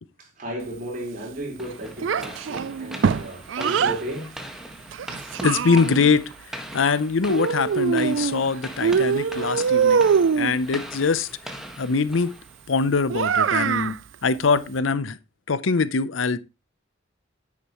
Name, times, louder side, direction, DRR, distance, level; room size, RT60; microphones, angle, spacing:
voice 1, 0.4-4.4, right 1 dB, 45° right, 4.3 m, -34 dB
sound 1, 1.6-12.9, equal, 5° right, 1.5 m, -40 dB
Child speech kid speaking, 2.0-4.0 4.9-6.2 7.3-8.5 8.8-10.6 13.1-14.0, right 6 dB, 70° right, 0.4 m, -23 dB
voice 2, 5.4-6.2 6.5-10.1 10.3-12.3 12.7-13.9 14.2-15.2 15.5-16.4, left 4 dB, 80° left, 0.7 m, -23 dB
9.9 x 8.6 x 3.0 m
head